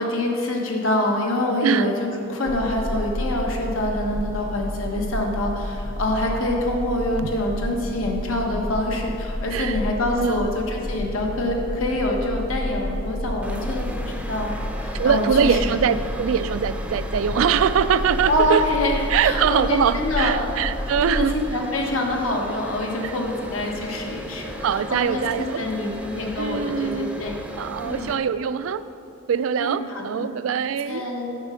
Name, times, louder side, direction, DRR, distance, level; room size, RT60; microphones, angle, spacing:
voice 1, 0.0-15.6 18.3-20.4 21.1-27.5 27.8-28.1 29.6-30.3 30.9-31.4, left 1 dB, 90° left, 0 dB, 1.3 m, -26 dB
sound 1, 2.5-21.4, left 1 dB, 40° left, 0.6 m, -30 dB
sound 2, 13.4-28.2, equal, 5° right, 0.5 m, -37 dB
voice 2, 14.9-18.6 19.1-21.3 23.0-23.2 24.6-25.6 26.4-27.2 27.6-28.8 29.3-31.0, right 7 dB, 80° right, 14 dB, 0.3 m, -23 dB
8.1 x 5.5 x 6.3 m, 2.7 s
head